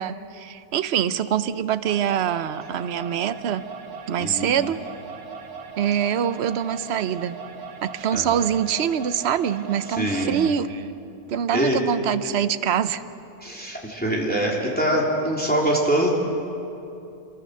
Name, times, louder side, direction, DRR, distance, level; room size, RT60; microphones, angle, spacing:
voice 1, 0.0-3.7 4.1-4.8 5.8-7.4 7.8-10.9 11.3-13.0, right 9 dB, 55° right, 12 dB, 0.9 m, -24 dB
sound 1, 1.8-10.6, right 5 dB, 90° right, 2.1 m, -39 dB
voice 2, 4.2-4.5 8.1-8.4 10.0-10.4 11.5-11.8 13.4-16.1, right 1 dB, 5° left, -3 dB, 3.3 m, -24 dB
28.0 x 23.0 x 6.6 m, 2.8 s
omnidirectional pair, 1.6 m